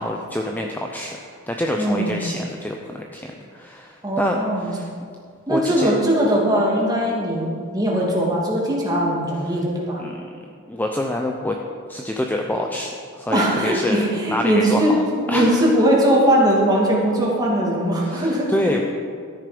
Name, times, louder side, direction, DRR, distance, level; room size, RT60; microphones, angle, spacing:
voice 1, 0.0-4.9 5.5-5.9 10.0-10.2 10.7-11.6 11.9-14.0 14.3-15.0 15.3-15.7 18.0-18.8, left 1 dB, 10° left, 1 dB, 0.6 m, -26 dB
voice 2, 1.8-2.2 4.0-4.7 5.5-10.0 13.3-15.0 15.3-18.7, right 1 dB, 15° right, -4 dB, 2.4 m, -20 dB
13.0 x 10.0 x 5.1 m, 2.2 s
head